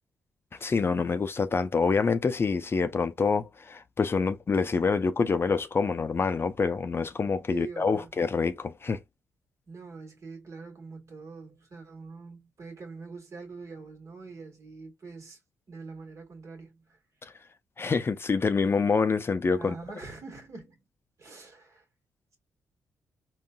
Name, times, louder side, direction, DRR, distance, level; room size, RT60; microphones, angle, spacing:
voice 1, 0.6-9.0 17.2-17.3 17.8-19.7, left 4 dB, 35° left, 0.4 m, -26 dB
voice 2, 7.5-8.1 9.7-15.4 15.7-17.0 19.6-20.8 21.2-21.8, right 4 dB, 50° right, 1.5 m, -44 dB
3.7 x 2.3 x 2.2 m
hypercardioid pair, 45°, 7 cm